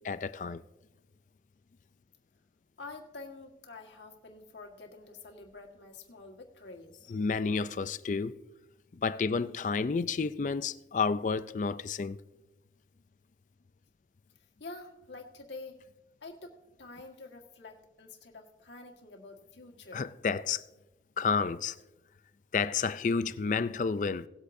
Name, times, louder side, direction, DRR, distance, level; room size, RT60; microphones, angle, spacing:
voice 1, 0.0-0.6 7.1-8.3 9.0-12.2 19.9-20.6 21.2-21.8 22.5-24.3, left 5 dB, 45° left, 0.4 m, -30 dB
voice 2, 2.8-7.2 14.6-15.8 16.2-16.5 16.8-20.1, left 3 dB, 85° left, 1.6 m, -47 dB
19.0 x 8.3 x 2.6 m
head